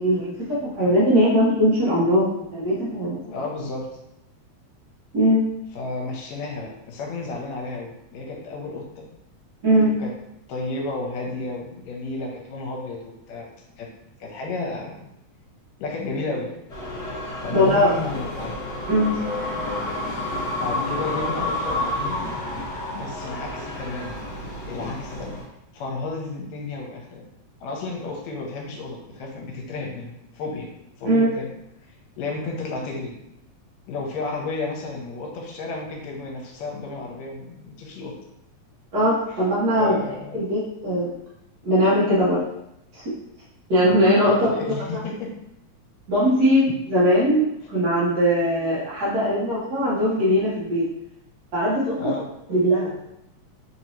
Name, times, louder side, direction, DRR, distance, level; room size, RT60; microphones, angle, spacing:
voice 1, 0.0-3.3 5.1-5.4 9.6-9.9 17.5-17.9 18.9-19.2 31.0-31.3 38.9-40.0 40.3-41.1 41.6-42.4 42.9-43.0 43.7-44.5 46.1-50.8 51.5-52.0 52.5-52.9, equal, 75° right, -8 dB, 0.9 m, -20 dB
voice 2, 3.3-3.9 5.7-9.1 10.0-10.1 10.5-13.5 13.8-13.9 14.2-15.1 15.8-16.5 17.4-18.5 20.6-22.2 22.9-24.2 24.6-25.3 25.7-27.2 27.6-30.7 31.0-31.5 32.2-33.1 33.9-38.1 39.3-39.4 39.8-40.6 44.3-45.3 52.0-52.3, left 3 dB, 75° left, 0 dB, 1.9 m, -32 dB
sound 1, 16.7-25.4, left 1 dB, 50° left, 1.4 m, -30 dB
4.4 x 3.0 x 2.7 m, 0.83 s
omnidirectional pair, 3.3 m